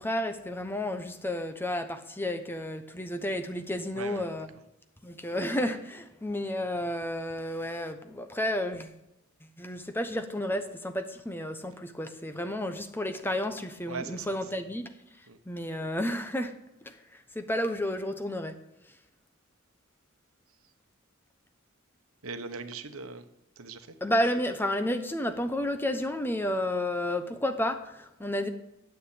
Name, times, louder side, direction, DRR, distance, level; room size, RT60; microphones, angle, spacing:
voice 1, 0.0-4.5 5.0-8.9 9.4-14.9 15.2-16.6 16.8-18.6 24.0-28.5, left 1 dB, 10° left, 8 dB, 0.9 m, -31 dB
voice 2, 3.9-4.3 13.9-14.3 15.3-15.4 22.2-23.2 23.6-23.9, right 4 dB, 80° right, 9 dB, 1.0 m, -39 dB
10.0 x 8.0 x 8.6 m, 0.90 s
head